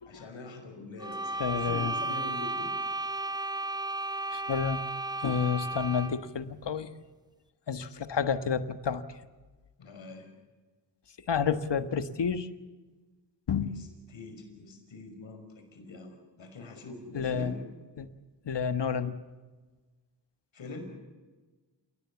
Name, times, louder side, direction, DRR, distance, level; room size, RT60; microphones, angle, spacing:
voice 1, 0.1-2.7 9.8-10.3 13.6-17.6 20.5-20.8, left 3 dB, 90° left, 5 dB, 5.6 m, -44 dB
sound 1, 1.0-6.3, right 2 dB, 10° right, 1.1 m, -34 dB
voice 2, 1.4-1.9 4.3-4.8 5.2-6.9 7.7-9.0 11.3-12.5 13.5-13.7 17.1-17.6 18.0-18.1 18.4-19.2, left 6 dB, 65° left, 10 dB, 1.5 m, -30 dB
29.0 x 18.5 x 7.2 m, 1.3 s
cardioid pair, 75°, 44 cm